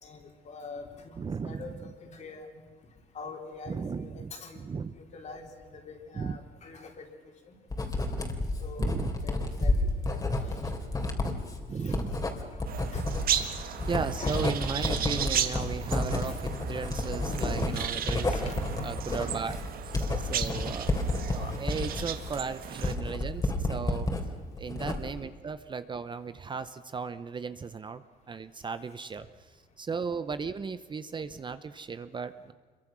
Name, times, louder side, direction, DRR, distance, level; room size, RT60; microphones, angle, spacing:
voice 1, 0.0-2.5 3.1-4.6 4.9-7.1 7.5-7.6 8.6-10.6 11.7-12.0 12.5-12.6 12.9-13.1 14.2-14.4 15.5-15.7 16.3-16.4 17.3-17.6 18.3-18.9 21.2-21.5 21.9-22.0 23.5-23.6, left 4 dB, 45° left, 2 dB, 4.0 m, -43 dB
voice 2, 1.2-1.6 3.7-4.9 6.1-6.4 8.8-9.3 11.7-12.2 13.5-18.5 18.8-19.6 19.9-24.1 24.6-28.0 28.3-32.5, right 5 dB, 30° right, 12 dB, 0.8 m, -36 dB
Writing, 7.7-24.2 24.6-25.3, left 2 dB, 20° left, 3.3 m, -30 dB
sound 1, 12.7-23.0, right 9 dB, 60° right, 1.6 m, -35 dB
26.0 x 23.0 x 6.2 m, 1.5 s
cardioid pair, 110°, 17 cm